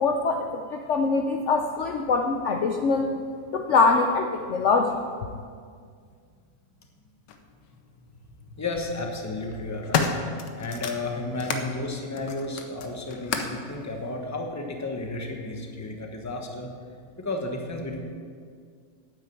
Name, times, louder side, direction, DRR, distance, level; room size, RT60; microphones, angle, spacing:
voice 1, 0.0-3.1 3.5-5.0, left 4 dB, 55° left, 4 dB, 0.8 m, -23 dB
sound 1, 7.3-7.4 8.5-8.9 9.4-11.7 12.1-13.6 14.5-14.6, left 5 dB, 80° left, 1.5 m, -30 dB
voice 2, 8.5-10.1 10.5-16.7 17.2-18.0, left 2 dB, 10° left, 2 dB, 1.0 m, -32 dB
9.2 x 9.0 x 7.6 m, 2.1 s
omnidirectional pair, 1.9 m